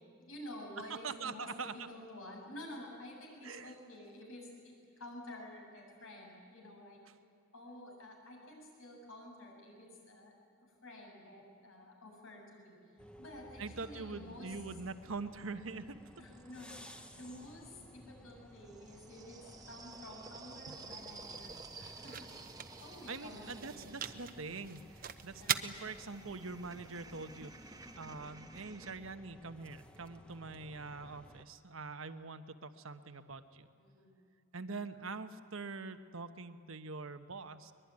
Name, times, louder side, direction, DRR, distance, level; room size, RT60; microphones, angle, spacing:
voice 1, 0.2-7.0 7.5-10.3 10.8-12.8 13.2-14.5 16.2-22.4 22.8-23.8 25.4-25.9 28.0-28.3 33.8-34.2, left 1 dB, 80° left, 0 dB, 7.5 m, -51 dB
voice 2, 1.0-1.9 3.4-3.7 13.6-16.0 20.6-20.8 23.1-33.7 34.5-37.7, right 4 dB, 80° right, 9 dB, 1.2 m, -44 dB
sound 1, 13.0-31.4, equal, 5° left, 1.0 m, -57 dB
sound 2, 15.5-17.7 18.6-29.0, right 4 dB, 20° right, 1.0 m, -53 dB
sound 3, 20.5-28.6, right 9 dB, 45° right, 0.9 m, -44 dB
23.5 x 21.5 x 9.7 m, 2.3 s
head